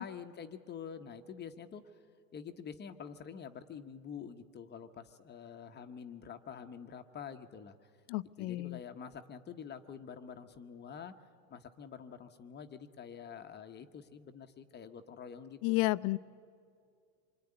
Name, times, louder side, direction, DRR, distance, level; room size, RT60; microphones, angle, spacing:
voice 1, 0.0-1.8 2.3-7.9 8.4-11.1 11.5-15.8, left 7 dB, 20° left, 7 dB, 0.9 m, -47 dB
voice 2, 8.1-8.8 15.6-16.2, left 20 dB, 50° left, 17 dB, 0.6 m, -31 dB
26.0 x 22.0 x 9.8 m, 2.3 s
supercardioid pair, 125°, 49 cm